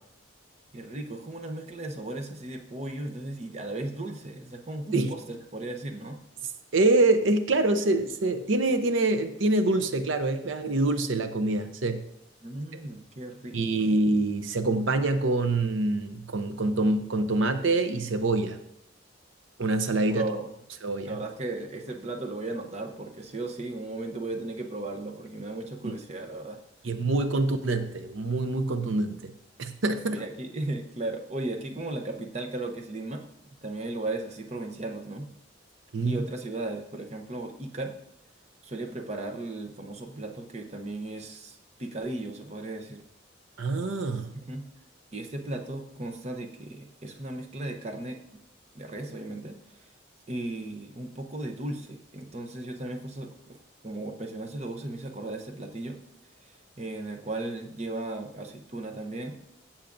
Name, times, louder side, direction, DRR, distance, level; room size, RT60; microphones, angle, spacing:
voice 1, 0.7-6.2 12.4-14.0 20.1-20.5 21.1-26.6 30.1-33.2 33.6-35.3 36.0-37.9 38.6-43.0 44.3-44.7 45.1-48.2 48.7-49.6 50.3-56.0 56.8-59.4, right 2 dB, 35° right, 4 dB, 0.8 m, -36 dB
voice 2, 6.7-12.0 13.5-18.6 19.6-20.3 20.8-21.2 25.8-25.9 26.8-29.3 29.6-30.2 35.9-36.2 43.6-44.3, right 2 dB, 80° right, 8 dB, 0.7 m, -25 dB
15.5 x 7.2 x 2.6 m, 0.79 s
head